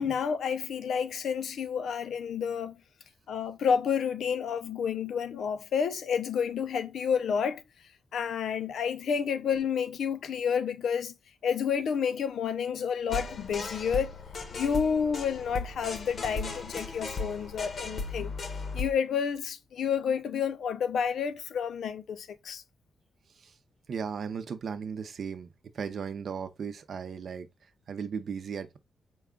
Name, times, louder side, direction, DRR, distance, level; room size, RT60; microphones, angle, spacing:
voice 1, 0.0-2.8 3.3-7.6 8.1-11.2 11.4-14.1 14.5-18.3 18.7-22.6, left 7 dB, 85° left, 0.4 m, -30 dB
sound 1, 13.1-18.9, left 3 dB, 45° left, 0.7 m, -36 dB
voice 2, 23.9-28.8, right 6 dB, 60° right, 0.6 m, -37 dB
4.7 x 2.3 x 3.5 m
wide cardioid pair, 135°, 0 cm